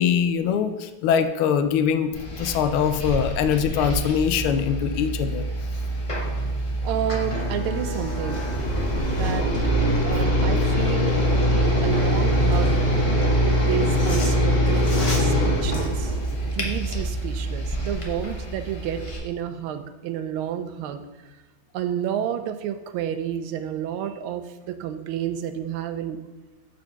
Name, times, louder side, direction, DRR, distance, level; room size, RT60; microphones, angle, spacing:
voice 1, 0.0-2.1 2.4-5.5, left 8 dB, 90° left, 9 dB, 1.5 m, -22 dB
sound 1, 2.1-19.2, equal, 35° left, 0.5 m, -24 dB
voice 2, 6.8-8.4 9.1-9.5 10.0-11.2 11.8-12.8 13.7-16.2 16.5-21.0 21.7-26.2, right 9 dB, 85° right, 8 dB, 1.4 m, -30 dB
sound 2, 7.0-7.1 7.4-9.6 11.8-12.8 13.6-17.0 17.4-17.5, left 1 dB, 55° left, 2.0 m, -39 dB
5.1 x 4.5 x 5.8 m, 1.1 s
omnidirectional pair, 2.3 m